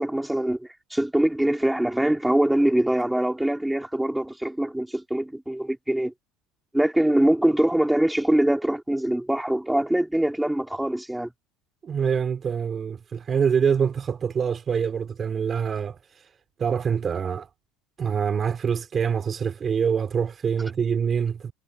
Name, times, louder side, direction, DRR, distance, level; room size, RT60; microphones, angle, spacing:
voice 1, 0.0-6.1 6.7-11.3, right 1 dB, 5° right, 5.1 m, -23 dB
voice 2, 11.8-16.0 16.6-17.5 18.0-21.5, right 7 dB, 25° right, 4.4 m, -25 dB
supercardioid pair, 130°, 0 cm